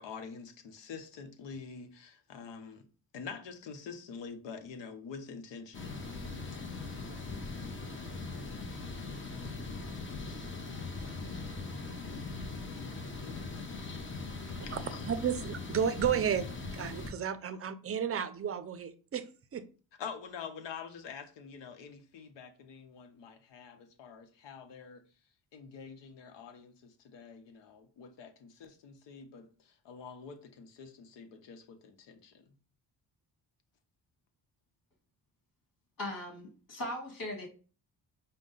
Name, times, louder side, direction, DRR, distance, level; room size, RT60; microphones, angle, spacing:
voice 1, 0.0-2.9 3.1-5.9 13.2-13.6 14.6-15.0 20.0-25.0 25.5-32.5, left 6 dB, 85° left, 0.9 m, -46 dB
sound 1, 5.7-17.1, left 3 dB, 30° left, 0.9 m, -40 dB
voice 2, 14.7-16.5 16.7-19.3 19.5-19.6, right 8 dB, 35° right, 0.5 m, -32 dB
voice 3, 36.0-37.5, left 1 dB, 50° left, 2.1 m, -39 dB
5.2 x 2.2 x 3.8 m
cardioid pair, 100°, 42 cm